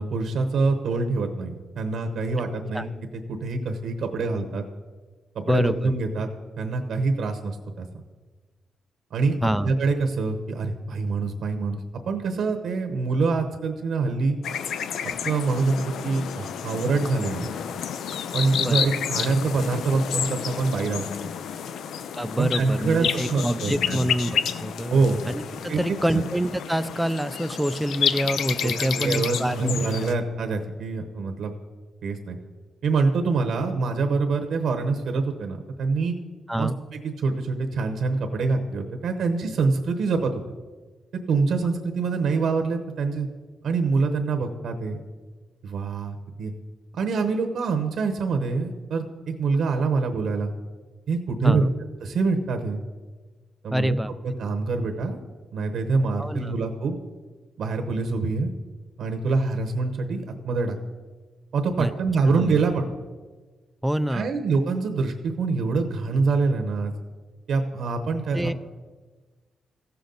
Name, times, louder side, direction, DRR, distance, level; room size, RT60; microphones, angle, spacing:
voice 1, 0.0-2.9 3.3-4.6 5.3-6.3 6.6-7.9 9.1-14.4 15.2-17.5 18.3-21.1 22.4-24.0 24.9-25.2 25.7-26.2 28.6-31.5 32.0-32.4 32.8-36.1 36.6-40.3 41.3-43.3 43.6-45.0 45.6-46.5 46.9-50.5 51.1-51.7 52.0-52.8 53.6-54.0 54.2-55.2 55.5-57.0 57.6-58.5 59.0-60.8 61.5-62.9 64.1-66.9 67.5-68.5, right 4 dB, 65° right, 5 dB, 0.9 m, -25 dB
voice 2, 5.5-5.9 9.4-9.7 18.6-18.8 22.2-25.0 25.3-29.7 36.5-36.8 51.4-51.7 53.7-54.1 56.2-56.5 61.8-61.9 62.3-62.6 63.8-64.3 68.3-68.5, equal, 5° right, 13 dB, 0.3 m, -26 dB
sound 1, 14.4-30.1, left 8 dB, 85° left, 0.5 m, -30 dB
15.5 x 6.9 x 3.9 m, 1.4 s
wide cardioid pair, 150°, 0 cm